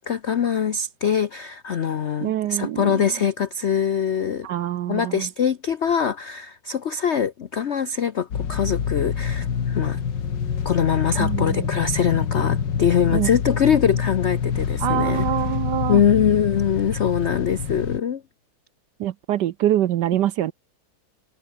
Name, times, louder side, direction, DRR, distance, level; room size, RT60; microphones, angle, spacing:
voice 1, 0.1-4.5 4.9-10.0 10.6-15.3 15.9-18.2, left 7 dB, 80° left, 0.6 m, -23 dB
voice 2, 2.2-3.0 4.4-5.3 11.2-11.7 13.1-13.3 14.8-16.0 19.0-20.5, right 12 dB, 65° right, 1.1 m, -24 dB
sound 1, 8.3-18.0, left 7 dB, 60° left, 2.4 m, -26 dB
omnidirectional pair, 2.2 m